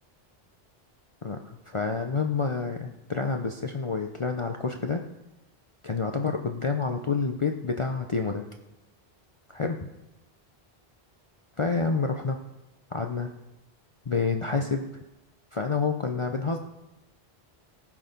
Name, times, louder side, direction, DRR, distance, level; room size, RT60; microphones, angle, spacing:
voice 1, 1.2-5.0 5.8-8.4 9.5-9.9 11.6-12.4 12.9-13.3 14.1-14.8 15.5-16.6, left 4 dB, 35° left, 4 dB, 0.6 m, -28 dB
18.0 x 6.1 x 5.2 m, 0.95 s
omnidirectional pair, 1.0 m